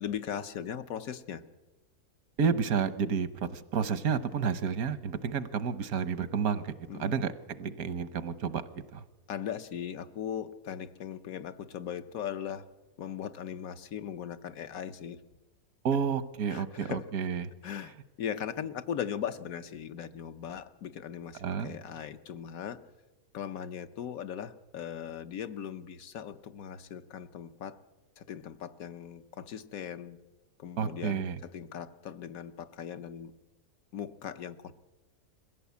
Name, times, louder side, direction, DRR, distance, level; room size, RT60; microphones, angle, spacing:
voice 1, 0.0-1.4 6.9-7.2 9.3-12.6 13.0-15.2 16.5-17.1 17.6-22.8 23.3-27.8 28.2-30.2 30.6-33.3 33.9-34.7, left 9 dB, 75° left, 10 dB, 1.3 m, -39 dB
voice 2, 2.4-6.7 7.0-7.3 7.6-8.6 8.9-9.0 15.8-17.5 21.4-21.8 30.8-31.4, right 6 dB, 85° right, 14 dB, 1.5 m, -30 dB
22.0 x 15.5 x 8.3 m, 1.1 s
omnidirectional pair, 1.5 m